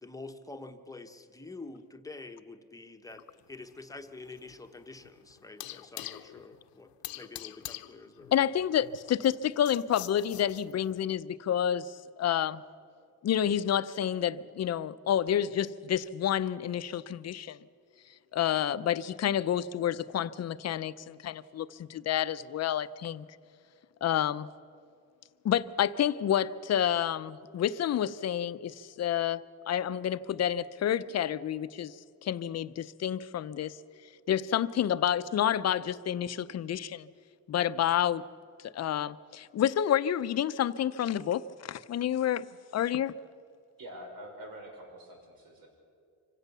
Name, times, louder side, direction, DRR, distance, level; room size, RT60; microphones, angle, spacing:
voice 1, 0.0-8.5, left 3 dB, 10° left, 6 dB, 1.0 m, -47 dB
sound 1, 3.1-11.0, left 14 dB, 90° left, 0.9 m, -46 dB
voice 2, 8.3-12.6 13.2-17.6 18.3-23.3 24.0-24.5 25.4-33.8 34.3-37.1 37.5-38.2 38.7-42.5 42.7-43.1, left 10 dB, 50° left, 15 dB, 0.6 m, -29 dB
voice 3, 43.8-45.7, equal, 75° right, 1 dB, 5.9 m, -46 dB
25.5 x 16.5 x 6.8 m, 2.3 s
cardioid pair, 140°, 35 cm